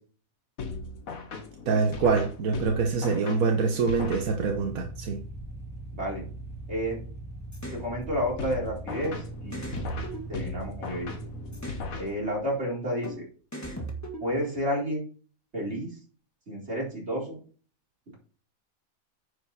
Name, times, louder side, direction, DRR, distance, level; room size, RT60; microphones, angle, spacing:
sound 1, 0.6-4.8 8.4-12.6, left 4 dB, 90° left, 1.7 m, -38 dB
voice 1, 1.7-5.2, right 4 dB, 85° right, 3 dB, 1.5 m, -25 dB
sound 2, 3.9-12.0, right 1 dB, 5° right, 2.1 m, -41 dB
voice 2, 5.9-6.2 6.7-7.0 7.7-10.0 10.3-11.1 12.0-13.2 14.2-15.1 15.5-16.0 16.5-17.4, equal, 50° right, -4 dB, 4.5 m, -31 dB
sound 3, 7.5-7.8 9.0-9.2 9.5-10.9 11.5-11.9 13.0-13.2 13.5-14.6, right 1 dB, 10° left, 1.6 m, -38 dB
9.6 x 6.6 x 4.2 m, 0.41 s
omnidirectional pair, 1.4 m